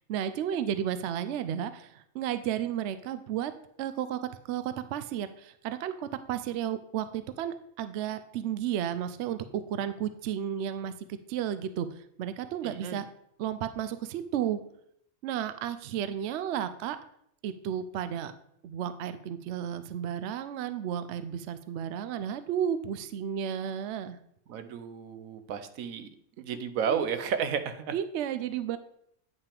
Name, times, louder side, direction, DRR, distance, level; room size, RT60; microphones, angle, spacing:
voice 1, 0.1-3.5 3.8-4.2 4.5-13.1 13.4-14.6 15.2-17.0 17.4-18.3 18.6-24.2 26.9-27.0 27.9-28.8, right 9 dB, 65° right, 12 dB, 0.8 m, -33 dB
voice 2, 12.6-13.0 24.5-26.1 26.4-27.9, right 7 dB, 80° right, 9 dB, 1.1 m, -32 dB
9.2 x 5.6 x 3.4 m, 0.71 s
omnidirectional pair, 1.4 m